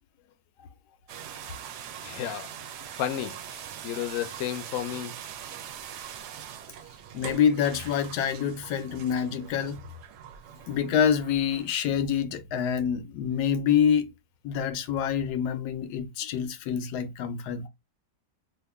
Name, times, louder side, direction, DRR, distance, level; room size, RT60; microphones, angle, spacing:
sound 1, 1.1-11.8, right 9 dB, 85° right, 1.1 m, -42 dB
voice 1, 2.0-5.1, left 11 dB, 65° left, 0.8 m, -33 dB
voice 2, 7.1-9.8 10.7-14.1 14.4-17.7, left 8 dB, 85° left, 1.2 m, -26 dB
2.8 x 2.5 x 3.4 m
omnidirectional pair, 1.7 m